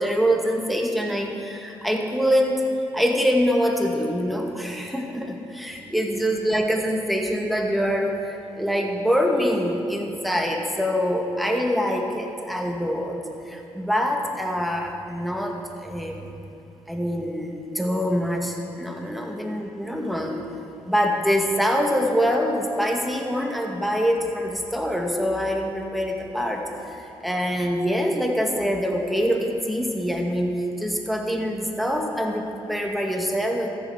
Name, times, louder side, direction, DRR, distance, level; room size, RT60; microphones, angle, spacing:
voice 1, 0.0-2.7 2.9-16.3 16.9-20.4 20.9-33.7, equal, ahead, 1 dB, 2.1 m, -25 dB
14.0 x 7.4 x 7.2 m, 2.9 s
hypercardioid pair, 45°, 11 cm